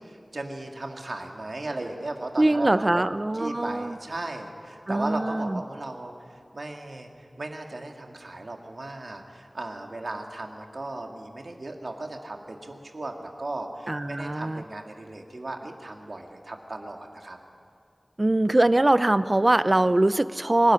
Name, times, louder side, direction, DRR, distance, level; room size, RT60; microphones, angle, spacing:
voice 1, 0.0-3.0 3.3-17.4 18.4-18.5, right 2 dB, 75° right, 3 dB, 2.1 m, -36 dB
voice 2, 2.4-4.0 4.9-5.6 13.9-14.6 18.2-20.7, right 1 dB, 40° right, 14 dB, 0.6 m, -22 dB
24.5 x 13.5 x 9.9 m, 2.4 s
wide cardioid pair, 60°, 0 cm